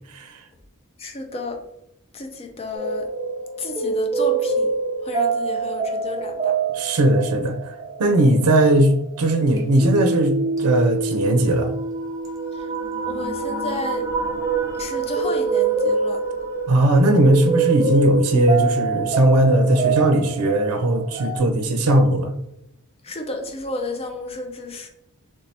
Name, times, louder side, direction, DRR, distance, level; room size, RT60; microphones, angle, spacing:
voice 1, 0.1-0.4 6.7-7.7 8.0-10.3 10.6-11.7 16.7-22.3, right 1 dB, 90° right, 6 dB, 0.5 m, -18 dB
voice 2, 1.0-1.6 2.1-3.1 3.6-4.7 5.1-6.5 13.0-14.1 14.8-16.2 23.1-24.9, left 2 dB, 25° left, 4 dB, 0.4 m, -31 dB
sound 1, 2.7-21.4, right 4 dB, 15° right, 0.7 m, -25 dB
3.1 x 2.7 x 3.2 m, 0.81 s
head